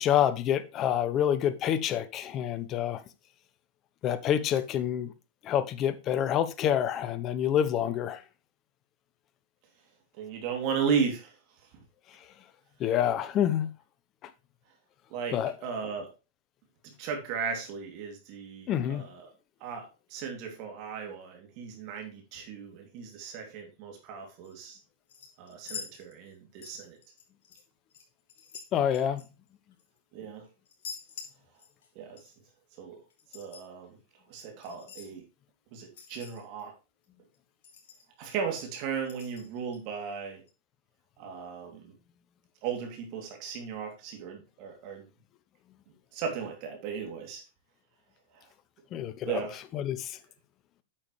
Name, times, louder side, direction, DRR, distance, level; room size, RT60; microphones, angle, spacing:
voice 1, 0.0-3.0 4.0-5.1 5.4-8.2 12.8-13.7 15.3-15.5 18.7-19.1 28.7-29.3 48.9-49.4 49.7-50.2, left 10 dB, 35° left, 0.9 m, -27 dB
voice 2, 10.1-11.4 15.1-16.1 16.8-19.3 19.6-24.8 25.4-27.0 30.1-30.5 31.9-32.2 32.8-33.0 33.3-34.0 34.3-35.2 35.7-36.7 38.2-40.4 41.2-41.8 42.6-45.0 46.1-47.4 48.3-48.5 49.2-49.5, right 6 dB, 50° right, 2.8 m, -35 dB
sound 1, 24.4-24.7 25.1-26.4 26.6-27.6 27.9-30.0 30.7-31.9 32.2-32.3 33.1-33.7 34.6-35.1 35.9-36.6 37.0-37.1 37.3-37.4 37.6-38.3 39.1-39.8 40.5-40.6, left 6 dB, 65° left, 3.4 m, -46 dB
8.8 x 7.1 x 3.2 m
hypercardioid pair, 110°, 0 cm